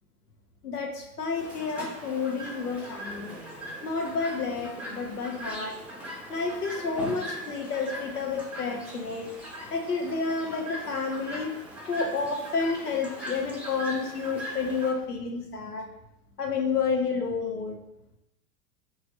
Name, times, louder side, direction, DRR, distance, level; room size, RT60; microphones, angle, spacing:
voice 1, 0.6-3.4 3.8-5.8 6.3-9.3 9.7-11.5 11.9-15.9 16.4-17.8, left 4 dB, 90° left, 2 dB, 0.6 m, -30 dB
Chirp tweet, 1.3-14.9, equal, 5° right, 0.8 m, -40 dB
3.1 x 2.3 x 4.0 m, 0.85 s
figure-of-eight pair, 85°, 45 cm